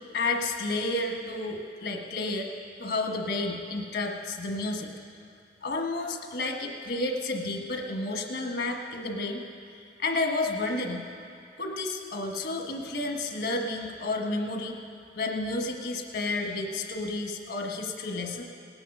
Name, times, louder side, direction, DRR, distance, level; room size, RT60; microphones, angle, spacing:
voice 1, 0.1-2.5 2.8-4.9 5.6-9.4 10.0-11.0 11.6-14.8 15.1-18.4, left 2 dB, 70° left, 2 dB, 1.4 m, -31 dB
18.5 x 9.7 x 5.5 m, 2.4 s
head